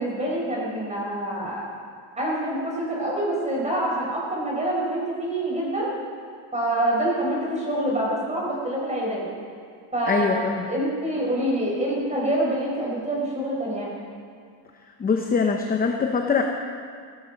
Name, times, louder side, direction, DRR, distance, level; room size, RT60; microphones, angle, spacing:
voice 1, 0.0-1.6 2.2-5.9 6.5-9.2 9.9-10.4 10.7-13.9, right 1 dB, 15° right, -3 dB, 4.6 m, -26 dB
voice 2, 10.1-10.7 15.0-16.4, left 5 dB, 20° left, 3 dB, 0.7 m, -23 dB
16.5 x 13.5 x 5.2 m, 2.2 s
cardioid pair, 155°, 48 cm